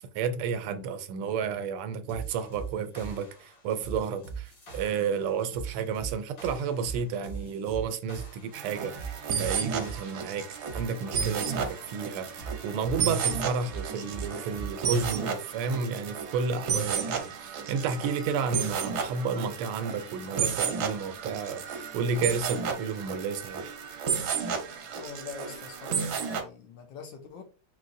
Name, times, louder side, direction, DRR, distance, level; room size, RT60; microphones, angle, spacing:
voice 1, 0.1-10.4 10.7-23.7, right 6 dB, 90° right, 1.5 m, -31 dB
sound 1, 2.1-15.7, right 5 dB, 50° left, 2.4 m, -41 dB
sound 2, 8.5-26.4, right 6 dB, 65° right, 1.0 m, -33 dB
voice 2, 25.0-27.4, left 6 dB, 70° left, 1.3 m, -44 dB
5.1 x 3.1 x 2.6 m
omnidirectional pair, 2.4 m